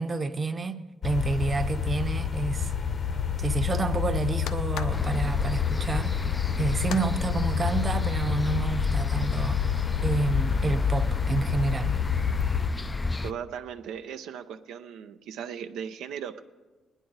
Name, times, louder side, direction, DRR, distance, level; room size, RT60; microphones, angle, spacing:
voice 1, 0.0-2.7 3.4-6.2 6.6-9.6 10.0-11.9, right 3 dB, 30° right, 0.8 m, -29 dB
sound 1, 1.0-12.7, left 8 dB, 50° left, 0.8 m, -28 dB
sound 2, 4.5-7.1, left 8 dB, 90° left, 0.6 m, -44 dB
sound 3, 4.9-13.3, left 3 dB, 20° left, 0.3 m, -32 dB
voice 2, 13.2-16.4, right 8 dB, 85° right, 0.6 m, -37 dB
20.5 x 10.0 x 4.0 m
cardioid pair, 90°, 0 cm